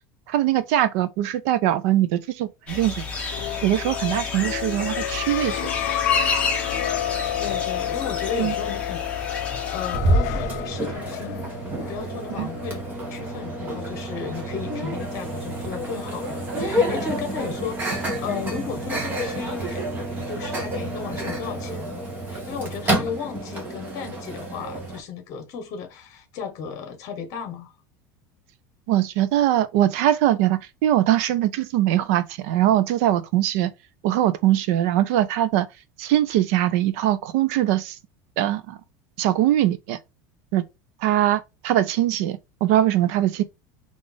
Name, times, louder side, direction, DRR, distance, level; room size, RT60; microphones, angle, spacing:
voice 1, 0.3-3.0 3.6-5.5 8.4-8.5 12.4-12.5 28.9-33.7 34.0-35.7 36.0-38.0 38.4-38.8 39.2-40.0 40.5-40.6 41.0-43.4, right 13 dB, 60° right, 0.5 m, -21 dB
sound 1, 2.7-10.0, left 4 dB, 15° left, 1.0 m, -30 dB
sound 2, 3.1-12.6, left 12 dB, 75° left, 0.4 m, -30 dB
voice 2, 7.4-9.0 9.3-11.5 11.9-12.8 13.1-19.8 20.2-22.0 22.3-27.7, left 6 dB, 40° left, 1.1 m, -34 dB
Microwave oven, 9.9-25.0, right 1 dB, 20° right, 0.9 m, -28 dB
3.8 x 2.5 x 3.3 m
cardioid pair, 180°, 9 cm